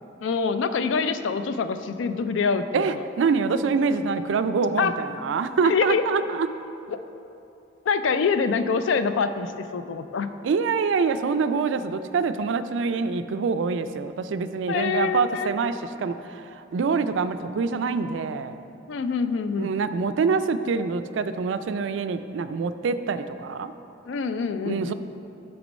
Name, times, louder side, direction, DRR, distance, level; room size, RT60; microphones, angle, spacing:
voice 1, 0.2-3.0 4.8-4.9 5.6-6.1 6.9-7.0 7.9-10.3 14.7-15.5 18.9-19.7 24.1-24.9, left 5 dB, 75° left, 11 dB, 0.4 m, -25 dB
voice 2, 2.7-6.5 10.4-18.6 19.6-23.7 24.6-24.9, right 5 dB, 75° right, 11 dB, 0.3 m, -25 dB
6.1 x 6.0 x 5.2 m, 2.8 s
head